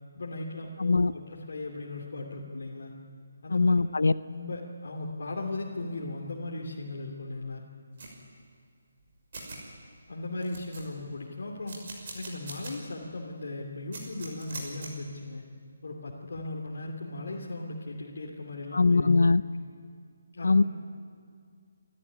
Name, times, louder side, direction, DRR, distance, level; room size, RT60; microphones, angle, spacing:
voice 1, 0.1-2.9 3.4-3.7 4.3-7.6 10.1-11.8 12.1-15.4 15.8-19.1 20.3-20.6, left 2 dB, 65° left, -2 dB, 2.9 m, -37 dB
voice 2, 0.8-1.1 3.5-4.1 18.7-19.4 20.4-20.6, left 3 dB, 90° left, 16 dB, 0.6 m, -21 dB
sound 1, 8.0-8.1 9.0-9.1 9.3-9.6 10.1-10.2 10.4-11.1 11.7-12.7 13.1-13.2 13.9-14.9, right 3 dB, 45° right, 6.2 m, -42 dB
28.5 x 13.5 x 9.9 m, 2.2 s
hypercardioid pair, 170°, 0 cm